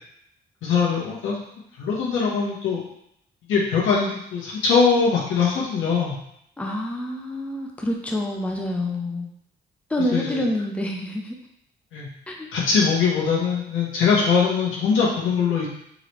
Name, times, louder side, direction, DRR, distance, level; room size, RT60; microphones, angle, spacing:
voice 1, 0.6-1.3 1.8-2.8 3.5-6.2 10.1-10.4 11.9-12.1 12.5-15.7, left 5 dB, 80° left, -5 dB, 1.2 m, -21 dB
voice 2, 6.6-9.3 9.9-11.4 12.3-12.5, left 1 dB, 5° left, 0 dB, 0.6 m, -27 dB
3.8 x 3.2 x 3.0 m, 0.73 s
cardioid pair, 90°, 20 cm